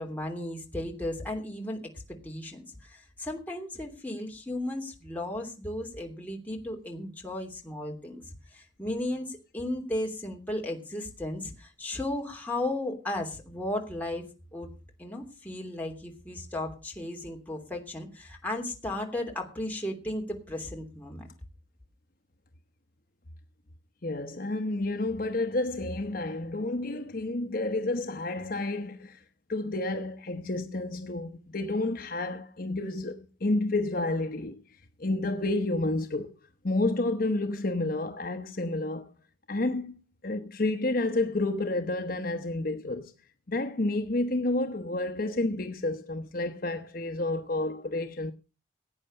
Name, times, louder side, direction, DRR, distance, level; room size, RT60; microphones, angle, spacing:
voice 1, 0.0-1.8 2.2-14.2 14.5-14.7 15.0-21.3, left 1 dB, 10° left, 3.0 m, -35 dB
voice 2, 24.0-29.2 29.5-36.4 36.6-39.1 39.5-43.1 43.5-48.3, left 2 dB, 45° left, 1.0 m, -30 dB
17.0 x 8.9 x 5.6 m
head